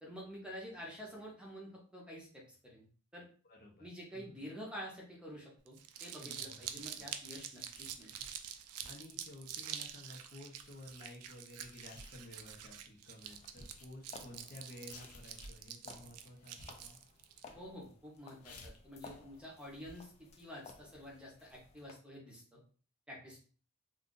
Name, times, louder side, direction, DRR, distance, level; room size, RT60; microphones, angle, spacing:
voice 1, 0.0-2.9 3.1-3.3 3.8-8.1 17.5-22.6 23.1-23.4, equal, 5° right, -3 dB, 0.7 m, -49 dB
voice 2, 3.4-3.9 4.1-4.4 6.2-6.6 7.0-7.1 8.9-17.0, left 1 dB, 45° left, 0 dB, 0.7 m, -53 dB
Crumpling crinkling, 5.7-17.4, right 9 dB, 85° right, 0.4 m, -47 dB
sound 1, 6.6-21.2, left 2 dB, 80° left, 0.6 m, -59 dB
sound 2, 13.2-21.9, left 4 dB, 30° left, 0.3 m, -58 dB
2.5 x 2.4 x 3.7 m, 0.41 s
head